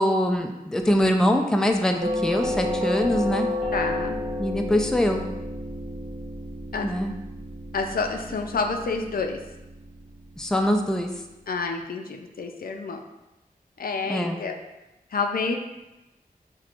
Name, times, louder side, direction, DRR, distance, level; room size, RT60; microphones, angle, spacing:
voice 1, 0.0-3.5 4.4-5.2 6.8-7.1 10.4-11.1 14.1-14.4, equal, 5° left, 4 dB, 0.4 m, -23 dB
Doorbell, 2.0-10.9, left 1 dB, 40° right, 1.0 m, -31 dB
voice 2, 3.7-4.2 6.7-6.9 7.7-9.4 11.5-13.0 13.8-14.6 15.1-15.6, left 4 dB, 75° left, 3 dB, 0.4 m, -28 dB
5.8 x 2.2 x 2.5 m, 1.0 s
wide cardioid pair, 65°, 15 cm